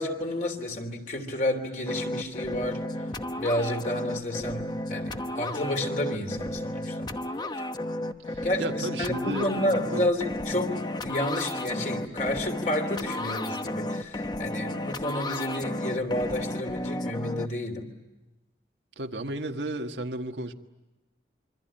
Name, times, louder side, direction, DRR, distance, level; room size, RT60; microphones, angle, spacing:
voice 1, 0.0-2.8 3.4-7.1 8.4-17.9, left 1 dB, 45° left, 4 dB, 3.2 m, -30 dB
sound 1, 1.9-17.5, left 1 dB, 25° left, 1.0 m, -33 dB
voice 2, 8.2-10.1 10.5-10.7 19.0-20.5, right 2 dB, 90° right, 4 dB, 1.6 m, -34 dB
26.5 x 24.0 x 8.9 m, 1.1 s
head